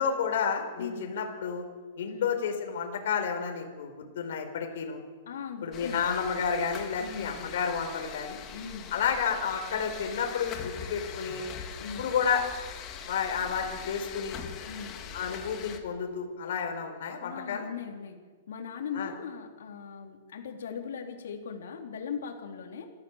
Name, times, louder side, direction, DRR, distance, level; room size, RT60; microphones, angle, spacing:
voice 1, 0.0-1.7 2.0-5.0 5.6-8.4 8.9-11.4 12.0-12.4 13.1-14.4 15.1-17.7 18.9-19.1, left 6 dB, 55° left, 3 dB, 4.6 m, -31 dB
voice 2, 0.8-1.1 2.1-2.3 5.3-6.1 7.0-7.5 8.5-8.9 11.8-12.1 14.7-15.0 17.2-18.2 18.5-22.9, left 6 dB, 70° left, 2 dB, 4.0 m, -39 dB
sound 1, 5.7-15.8, left 8 dB, 20° left, 2.0 m, -42 dB
27.5 x 14.0 x 7.5 m, 1.5 s
hypercardioid pair, 170°, 0 cm